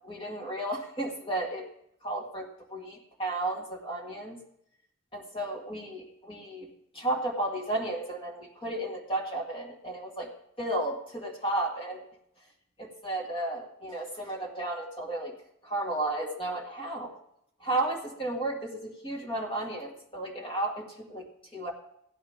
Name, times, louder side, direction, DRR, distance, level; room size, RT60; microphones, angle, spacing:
voice 1, 0.0-1.7 2.0-4.4 5.1-6.7 6.9-10.3 10.6-12.1 12.8-15.3 15.6-17.1 17.6-21.7, right 1 dB, 25° left, 0 dB, 2.0 m, -33 dB
16.0 x 10.5 x 3.6 m, 0.75 s
head